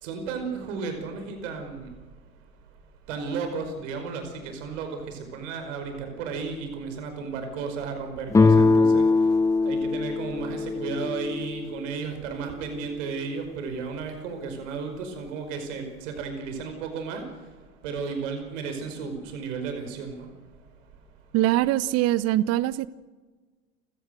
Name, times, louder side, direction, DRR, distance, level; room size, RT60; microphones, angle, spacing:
voice 1, 0.0-1.9 3.1-9.0 9.6-17.2 17.8-20.3, right 5 dB, 55° right, 6 dB, 5.2 m, -33 dB
sound 1, 8.3-11.9, left 3 dB, 5° left, 0.7 m, -21 dB
voice 2, 21.3-22.9, right 14 dB, 35° right, 19 dB, 0.9 m, -23 dB
30.0 x 16.5 x 6.5 m, 1.3 s
figure-of-eight pair, 80°, 43 cm